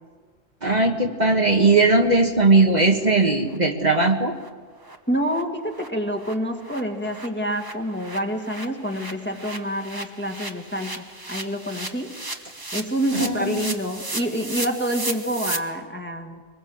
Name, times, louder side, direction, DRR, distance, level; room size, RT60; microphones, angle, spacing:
voice 1, 0.6-4.3 13.1-13.7, right 3 dB, 40° right, 2 dB, 1.6 m, -19 dB
sound 1, 2.6-2.7 3.0-3.1 3.5-3.6 3.9-4.0 4.4-4.5 4.8-5.0 5.3-5.4 5.7-15.6, right 2 dB, 20° right, 1.3 m, -35 dB
voice 2, 5.1-12.1 12.7-16.4, equal, 10° left, 2 dB, 2.0 m, -27 dB
24.0 x 20.5 x 8.0 m, 1.5 s
omnidirectional pair, 1.1 m